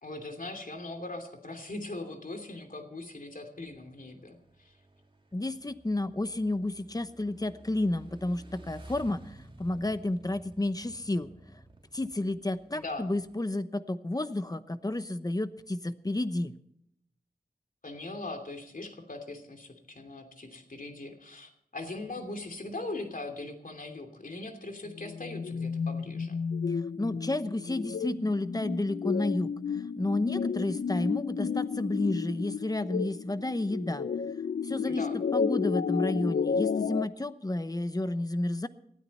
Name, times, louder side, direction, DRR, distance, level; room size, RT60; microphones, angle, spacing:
voice 1, 0.0-4.7 12.7-13.1 17.8-26.4 34.9-35.2, left 2 dB, 60° left, 4 dB, 2.8 m, -40 dB
Motorcycle / Engine, 3.6-13.4, right 2 dB, 35° right, 2.8 m, -53 dB
voice 2, 5.3-11.3 11.9-16.5 26.7-34.1 34.6-35.0 35.3-38.7, left 2 dB, 25° left, 12 dB, 0.9 m, -31 dB
sound 1, 24.8-37.1, left 6 dB, 85° left, 0.5 m, -32 dB
19.5 x 13.0 x 4.3 m, 0.72 s
wide cardioid pair, 75°, 16 cm